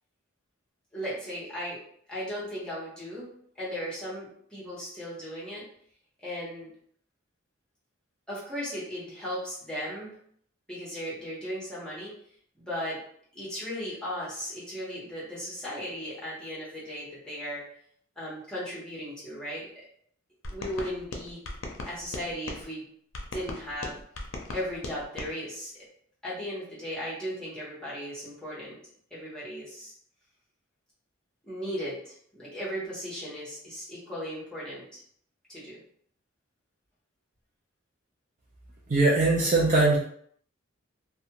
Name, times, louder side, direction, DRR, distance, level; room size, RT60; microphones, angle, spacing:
voice 1, 0.9-1.8 2.1-5.7 6.2-6.7 8.3-10.2 10.7-12.2 12.5-13.0 13.3-17.6 18.2-19.7 20.5-21.4 21.9-22.8 23.3-24.0 24.5-25.7 26.2-28.8 29.1-29.9 31.4-35.0 35.5-35.8, equal, 5° left, -8 dB, 1.1 m, -36 dB
sound 1, 20.4-22.6 23.1-25.3, left 2 dB, 90° left, 0.5 m, -38 dB
voice 2, 38.9-40.0, right 2 dB, 40° right, -4 dB, 0.4 m, -21 dB
2.5 x 2.2 x 2.8 m, 0.63 s
head